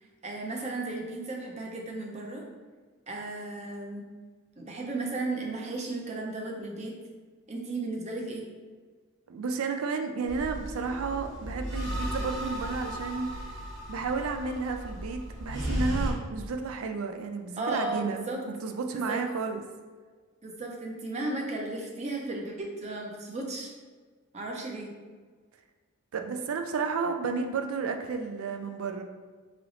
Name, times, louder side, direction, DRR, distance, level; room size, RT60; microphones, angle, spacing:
voice 1, 0.2-2.4 3.1-4.0 4.6-6.9 7.5-8.4 17.6-18.4 18.9-19.2 20.4-23.7 24.3-24.9, right 2 dB, 30° right, 0 dB, 0.6 m, -34 dB
voice 2, 9.3-13.3 13.9-18.2 18.5-19.6 26.1-29.0, right 4 dB, 75° right, 5 dB, 0.4 m, -32 dB
sound 1, 10.2-16.1, equal, 60° right, 1.1 m, -35 dB
3.2 x 3.0 x 3.8 m, 1.5 s
head